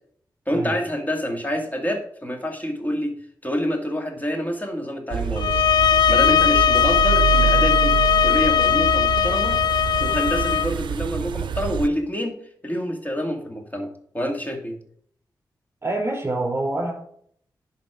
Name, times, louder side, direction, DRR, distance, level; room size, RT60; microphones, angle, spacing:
voice 1, 0.5-3.1 3.4-5.6 6.1-9.6 10.0-12.4 12.6-13.9 14.1-14.8, equal, 20° left, 3 dB, 2.2 m, -27 dB
sound 1, 5.1-11.9, right 8 dB, 90° right, 0.5 m, -26 dB
sound 2, 5.4-10.7, left 8 dB, 65° left, 0.4 m, -19 dB
voice 2, 15.8-16.9, right 2 dB, 30° right, 0 dB, 4.3 m, -26 dB
11.0 x 4.2 x 5.0 m, 0.64 s
cardioid pair, 55°, 8 cm